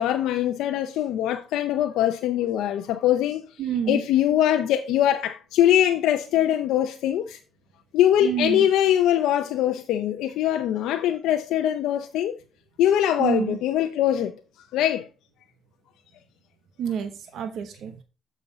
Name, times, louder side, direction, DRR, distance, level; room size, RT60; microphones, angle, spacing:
voice 1, 0.0-3.4 3.9-7.4 7.9-12.3 12.8-14.3 14.7-15.0, left 11 dB, 90° left, 0.6 m, -22 dB
voice 2, 3.6-4.1 8.2-8.7 13.2-13.6 16.8-18.0, right 8 dB, 75° right, 1.0 m, -28 dB
7.1 x 6.1 x 3.9 m
cardioid pair, 90°, 0 cm